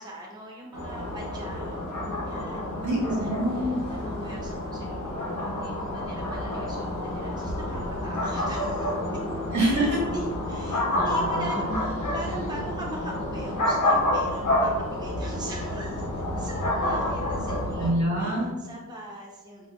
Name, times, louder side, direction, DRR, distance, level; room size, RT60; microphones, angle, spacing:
voice 1, 0.0-1.9 2.3-8.9 10.1-16.0 16.4-17.9 18.4-19.7, right 1 dB, 15° right, -3 dB, 0.6 m, -41 dB
sound 1, 0.7-17.9, left 1 dB, 75° left, 0.9 m, -29 dB
sound 2, 2.0-13.7, left 2 dB, 40° left, 0.5 m, -43 dB
voice 2, 2.8-3.8 9.5-10.0 10.9-11.8 17.8-18.5, right 1 dB, 65° right, -5 dB, 1.3 m, -26 dB
4.1 x 2.5 x 2.3 m, 1.1 s
cardioid pair, 80°, 31 cm